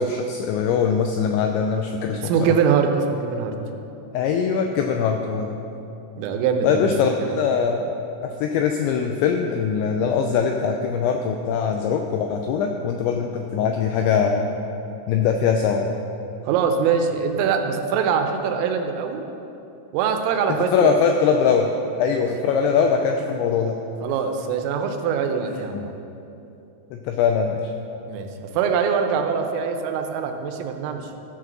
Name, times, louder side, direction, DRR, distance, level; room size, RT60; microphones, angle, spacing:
voice 1, 0.0-2.6 4.1-5.6 6.6-14.5 15.1-15.9 20.7-21.7 22.0-23.8 25.5-25.8 26.9-27.7, left 6 dB, 85° left, 3 dB, 2.6 m, -22 dB
voice 2, 2.2-3.6 6.2-6.8 7.2-7.3 16.5-19.2 19.9-20.9 22.1-22.2 24.0-25.9 28.1-31.1, right 6 dB, 90° right, 5 dB, 3.4 m, -23 dB
14.5 x 4.9 x 5.9 m, 2.8 s
omnidirectional pair, 5.8 m